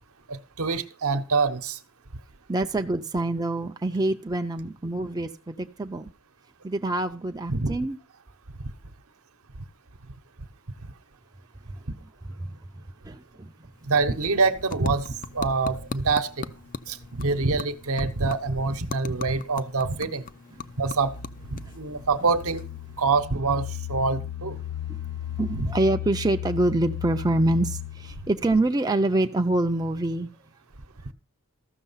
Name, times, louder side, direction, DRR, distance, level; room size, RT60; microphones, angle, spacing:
voice 1, 0.3-1.8 7.5-7.8 13.9-16.5 16.9-20.2 20.8-21.1 21.5-22.6 23.0-24.6 25.6-25.7 31.0-31.1, right 4 dB, 65° right, 0.9 m, -25 dB
voice 2, 2.5-6.1 6.6-8.0 12.4-12.6 13.1-13.5 24.9-25.0 25.4-30.3, right 2 dB, 15° right, 0.5 m, -26 dB
sound 1, 13.7-23.2, left 5 dB, 40° left, 0.5 m, -40 dB
sound 2, 20.6-28.5, left 11 dB, 55° left, 0.8 m, -36 dB
14.0 x 6.5 x 5.6 m
head